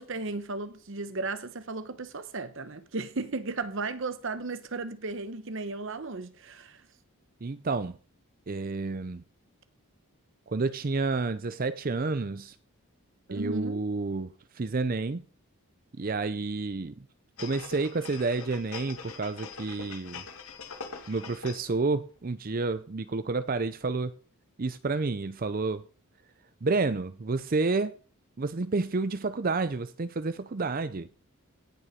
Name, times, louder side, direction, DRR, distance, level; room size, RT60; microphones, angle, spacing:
voice 1, 0.0-6.9 13.3-13.8, right 3 dB, 60° right, 0.9 m, -35 dB
voice 2, 7.4-8.0 8.5-9.2 10.5-12.6 13.3-15.2 16.0-16.9 17.4-20.2 21.1-24.2 24.6-25.8 26.6-28.0 28.4-31.1, right 3 dB, 40° right, 0.5 m, -30 dB
sound 1, 17.4-21.8 22.2-22.3, left 5 dB, 85° left, 2.1 m, -43 dB
17.5 x 7.0 x 5.1 m
head